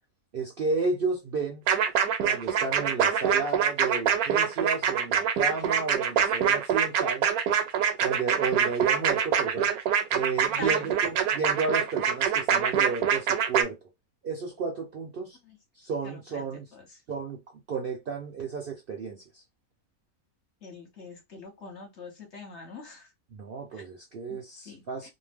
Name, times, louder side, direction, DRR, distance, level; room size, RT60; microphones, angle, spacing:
voice 1, 0.3-1.7 2.2-7.3 8.0-9.7 10.1-13.8 14.2-15.4 15.8-16.7 17.1-17.4 17.7-19.4 23.3-25.1, right 4 dB, 55° right, 0.6 m, -32 dB
sound 1, 1.7-13.6, right 8 dB, 75° right, 1.1 m, -25 dB
voice 2, 10.6-11.0 15.4-15.6 16.0-17.0 20.6-23.1 23.7-23.8 24.3-24.4 24.6-25.1, left 3 dB, 50° left, 1.1 m, -44 dB
2.6 x 2.1 x 3.4 m
omnidirectional pair, 1.6 m